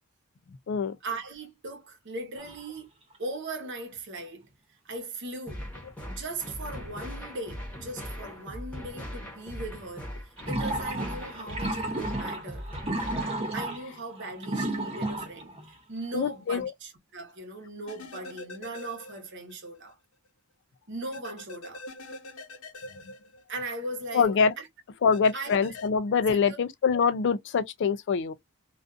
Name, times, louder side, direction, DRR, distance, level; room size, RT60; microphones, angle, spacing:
voice 1, 1.0-2.9 3.2-5.6 6.0-12.7 13.5-19.9 20.9-21.8 23.5-24.7 25.3-25.5 26.3-26.6, right 2 dB, 50° right, 0.9 m, -39 dB
sound 1, 2.4-2.7 3.1-3.2 10.4-15.7, right 2 dB, 25° right, 0.6 m, -33 dB
sound 2, 5.5-13.5, equal, 5° left, 1.0 m, -40 dB
voice 2, 16.1-16.7 24.1-24.6 25.0-28.3, left 6 dB, 55° left, 0.3 m, -24 dB
sound 3, 17.9-19.6 19.9-20.0 21.1-23.9 25.1-25.9, left 2 dB, 70° left, 0.9 m, -44 dB
2.5 x 2.4 x 2.3 m
head